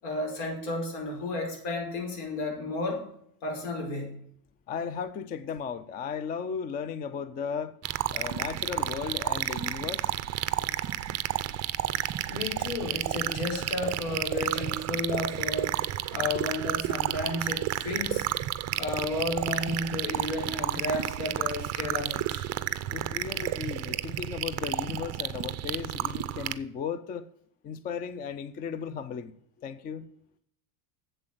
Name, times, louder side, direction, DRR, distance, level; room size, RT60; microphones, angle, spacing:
voice 1, 0.0-3.0 3.4-4.1 12.3-15.8 16.1-18.3 18.8-22.4 23.3-23.5, left 2 dB, 75° left, 5.2 m, -32 dB
voice 2, 4.7-7.8 8.1-10.1 22.9-27.3 27.6-29.3 29.6-30.1, left 6 dB, 20° left, 0.3 m, -35 dB
sound 1, 7.8-26.6, right 13 dB, 35° right, 0.6 m, -31 dB
7.9 x 7.7 x 7.5 m
cardioid pair, 145°, 46 cm